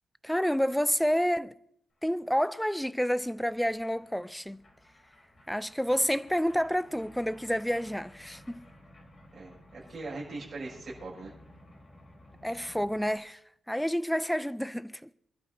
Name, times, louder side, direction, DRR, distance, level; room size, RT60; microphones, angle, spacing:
voice 1, 0.2-1.5 2.0-4.6 5.5-8.7 12.4-13.4 13.7-15.1, equal, ahead, 0.4 m, -29 dB
sound 1, 2.3-13.2, left 1 dB, 30° left, 3.8 m, -55 dB
voice 2, 9.3-11.3, right 3 dB, 35° right, 6.6 m, -41 dB
27.0 x 12.0 x 2.7 m
wide cardioid pair, 150°, 0 cm